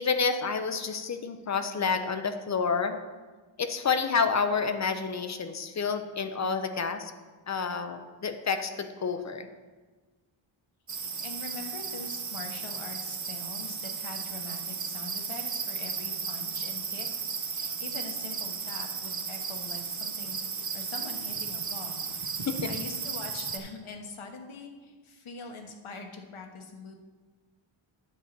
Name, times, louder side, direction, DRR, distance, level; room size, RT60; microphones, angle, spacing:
voice 1, 0.0-3.0 3.6-7.1 7.5-9.5 22.5-22.7, left 5 dB, 35° left, 8 dB, 0.6 m, -29 dB
sound 1, 10.9-23.6, right 5 dB, 35° right, 0.8 m, -35 dB
voice 2, 11.0-17.1 17.4-26.9, left 3 dB, 80° left, 3 dB, 1.3 m, -43 dB
10.0 x 4.1 x 7.4 m, 1.4 s
wide cardioid pair, 160°, 49 cm